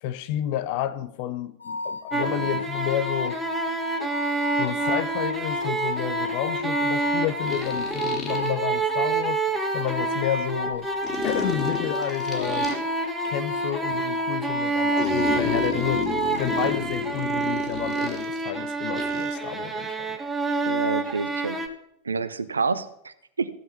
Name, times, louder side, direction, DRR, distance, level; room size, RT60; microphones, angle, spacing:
voice 1, 0.0-3.4 4.6-9.4 9.7-10.9 11.2-12.7 13.2-20.2, left 11 dB, 45° left, 0.8 m, -30 dB
sound 1, 1.6-16.8, left 3 dB, 80° left, 0.8 m, -33 dB
sound 2, 2.1-21.7, right 3 dB, 10° right, 1.4 m, -28 dB
voice 2, 2.2-2.6 20.7-21.6 22.0-23.5, right 4 dB, 75° right, 0.8 m, -29 dB
sound 3, 4.8-4.9 7.4-8.5 11.0-12.8 15.0-18.4 19.0-19.3, left 5 dB, 30° left, 3.3 m, -31 dB
15.0 x 7.9 x 5.7 m
figure-of-eight pair, 90°, 0 cm